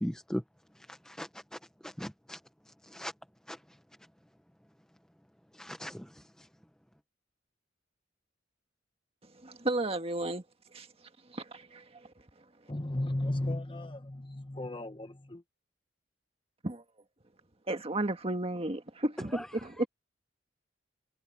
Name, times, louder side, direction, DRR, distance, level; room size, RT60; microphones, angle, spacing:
voice 1, 0.0-0.4 0.9-1.3 1.8-2.4 2.9-3.1 3.5-3.6 5.6-6.1 19.3-19.4, equal, 5° left, 0.8 m, -37 dB
voice 2, 9.4-10.4 10.7-10.9 11.3-12.0 16.6-16.8 17.7-19.9, right 1 dB, 30° right, 1.7 m, -33 dB
voice 3, 12.7-15.4, left 1 dB, 30° left, 1.4 m, -35 dB
head